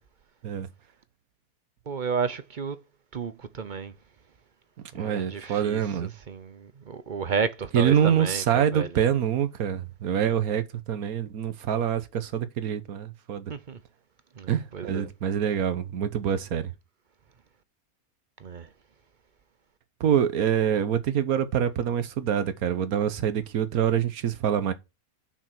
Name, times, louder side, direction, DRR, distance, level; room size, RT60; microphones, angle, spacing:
voice 1, 1.9-2.8 3.1-3.9 5.0-8.9 13.5-13.8 14.4-15.1 18.4-18.7, right 5 dB, 45° right, 0.6 m, -32 dB
voice 2, 4.9-6.1 7.7-13.5 14.5-16.7 20.0-24.7, right 9 dB, 80° right, 1.4 m, -25 dB
6.7 x 6.3 x 5.8 m
omnidirectional pair, 1.5 m